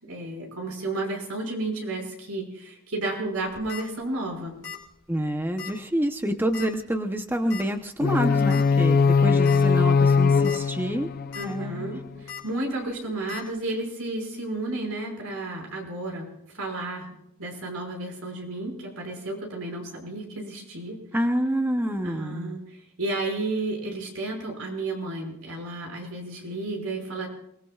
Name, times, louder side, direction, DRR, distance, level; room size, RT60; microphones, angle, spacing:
voice 1, 0.1-4.6 11.3-16.3 16.5-21.0 22.0-27.3, right 2 dB, 80° right, 1 dB, 5.6 m, -32 dB
sound 1, 3.4-3.8 4.6-4.9 5.1-5.2 5.6-5.7 6.5-6.8 7.5-7.6 8.5-8.6 9.1-9.2 9.5-9.6 10.3-10.6 11.0-11.5 12.3-12.4 13.3-13.4, left 7 dB, 65° left, 3.4 m, -37 dB
voice 2, 5.1-11.1 11.4-11.9 21.1-22.6, equal, 10° right, 6 dB, 0.7 m, -27 dB
sound 2, 8.0-12.0, left 5 dB, 40° left, 0.5 m, -21 dB
29.0 x 19.5 x 2.4 m, 0.80 s
head